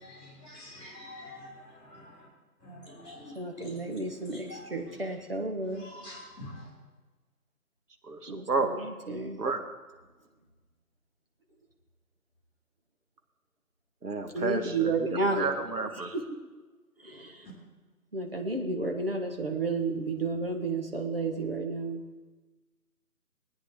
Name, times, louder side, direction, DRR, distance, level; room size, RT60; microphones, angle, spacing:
voice 1, 0.0-2.3 2.6-3.7 4.5-4.6 5.8-6.7, left 1 dB, 5° left, -18 dB, 4.6 m, -46 dB
voice 2, 3.3-5.9 8.3-9.4 14.3-15.5 16.0-16.2 17.0-17.5 18.1-22.0, right 3 dB, 35° right, 3 dB, 1.2 m, -32 dB
voice 3, 8.0-8.7 9.4-9.6 14.0-15.1 15.4-16.1, right 4 dB, 75° right, 6 dB, 1.7 m, -31 dB
19.0 x 9.6 x 3.7 m, 1.2 s
figure-of-eight pair, 175°, 48 cm